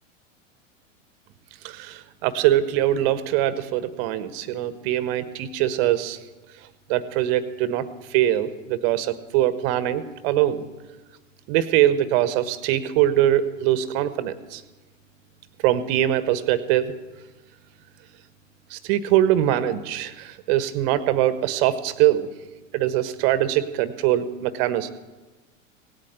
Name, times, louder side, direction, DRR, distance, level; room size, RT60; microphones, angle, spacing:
voice 1, 1.6-6.2 6.9-10.7 11.5-14.6 15.6-16.9 18.7-22.3 22.7-24.9, right 12 dB, 45° right, 14 dB, 1.2 m, -22 dB
18.0 x 8.6 x 8.2 m, 1.2 s
figure-of-eight pair, 90°, 39 cm